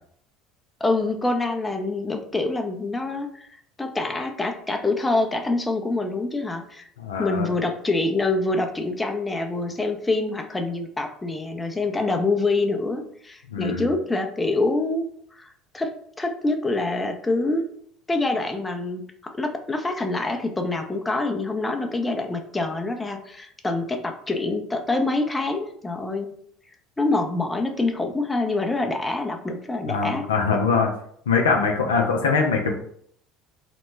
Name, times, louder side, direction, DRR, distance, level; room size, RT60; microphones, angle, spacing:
voice 1, 0.8-3.5 3.8-6.9 7.2-15.1 15.4-17.7 18.1-26.3 27.0-30.3, left 2 dB, 15° left, 4 dB, 0.5 m, -26 dB
voice 2, 7.0-7.5 13.5-13.9 29.9-30.9 31.3-32.7, left 5 dB, 85° left, 2 dB, 0.4 m, -22 dB
3.0 x 2.1 x 3.2 m, 0.64 s
hypercardioid pair, 70°, 0 cm